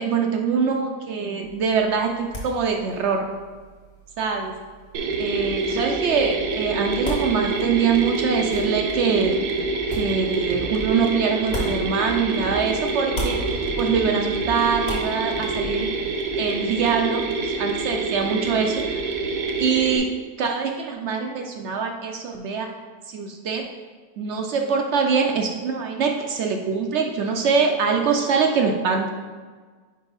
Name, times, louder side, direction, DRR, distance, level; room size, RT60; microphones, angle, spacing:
voice 1, 0.0-3.3 4.2-4.5 5.2-15.9 16.4-19.2 19.6-20.1 20.4-22.7 23.1-23.6 24.2-29.1, right 5 dB, 70° right, 3 dB, 0.6 m, -24 dB
sound 1, 1.4-12.6 12.9-16.3, equal, 50° left, 1.6 m, -38 dB
Mechanisms, 4.9-20.0, right 3 dB, 90° right, 1.3 m, -26 dB
sound 2, 10.5-11.0 11.5-12.2 12.4-12.9 13.4-14.1 14.3-14.8 15.3-15.8, equal, 85° left, 1.3 m, -37 dB
5.2 x 4.7 x 4.0 m, 1.5 s
omnidirectional pair, 1.7 m